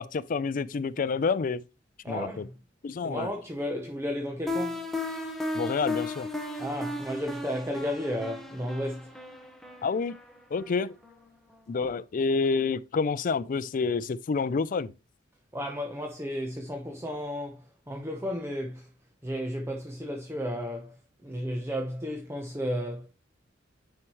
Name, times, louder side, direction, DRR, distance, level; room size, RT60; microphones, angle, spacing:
voice 1, 0.0-1.6 2.1-2.5 2.8-3.3 5.5-6.3 9.8-10.2 10.5-10.9 11.7-14.9, left 4 dB, 45° left, 0.4 m, -28 dB
voice 2, 2.0-2.6 3.0-4.9 6.6-9.1 15.5-18.9 19.2-21.0 21.2-23.1, equal, 15° right, 0.8 m, -33 dB
sound 1, 4.5-11.2, left 2 dB, ahead, 1.1 m, -35 dB
9.7 x 4.6 x 2.9 m
head